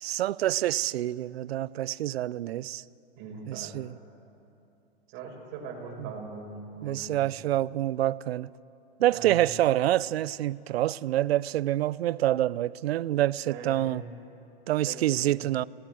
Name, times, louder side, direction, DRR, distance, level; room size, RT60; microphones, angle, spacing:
voice 1, 0.0-2.8 3.5-3.9 6.0-6.1 6.8-8.5 9.0-14.0 14.7-15.6, right 13 dB, 80° right, 0.6 m, -27 dB
voice 2, 3.2-3.8 5.1-7.2 9.1-9.4 13.5-14.0 14.8-15.4, right 4 dB, 40° right, 5.1 m, -41 dB
25.5 x 18.5 x 7.7 m
hypercardioid pair, 140°, 31 cm